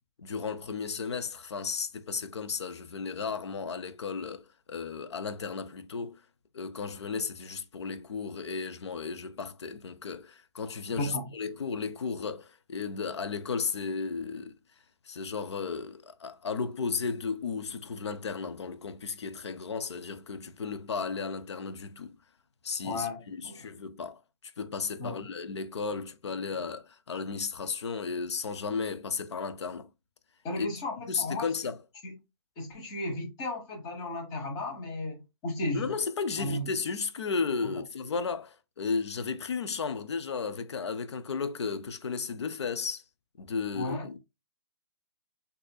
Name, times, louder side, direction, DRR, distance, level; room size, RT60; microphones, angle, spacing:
voice 1, 0.2-6.2 6.5-14.5 15.1-22.1 22.6-24.2 24.6-29.9 30.6-30.7 31.1-31.8 35.7-43.0 43.4-44.2, left 5 dB, 80° left, 0.5 m, -34 dB
voice 2, 10.9-11.3 22.8-23.7 25.0-25.3 30.4-31.5 32.0-32.1 32.6-35.9 36.4-36.8 37.6-37.7 43.7-44.1, left 2 dB, 30° left, 1.2 m, -35 dB
4.0 x 2.7 x 2.2 m
hypercardioid pair, 130°, 14 cm